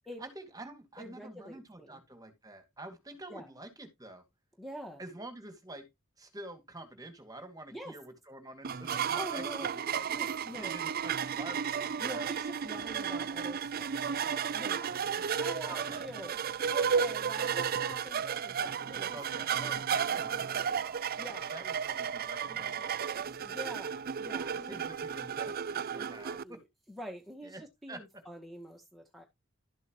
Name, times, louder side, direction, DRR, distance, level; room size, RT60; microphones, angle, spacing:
voice 1, 0.2-4.2 5.0-5.9 6.2-10.1 10.6-12.3 15.7-16.0 19.1-23.2 24.7-26.6 27.4-28.0, right 1 dB, 20° right, 2.4 m, -48 dB
voice 2, 1.0-2.0 3.3-3.5 4.6-5.0 7.7-8.0 9.1-9.7 10.0-10.8 12.0-19.2 19.6-19.8 20.5-20.6 21.2-21.5 23.4-24.8 26.0-29.2, equal, ahead, 1.7 m, -46 dB
sound 1, 8.6-26.4, right 7 dB, 45° right, 0.5 m, -33 dB
12.5 x 8.0 x 3.1 m
head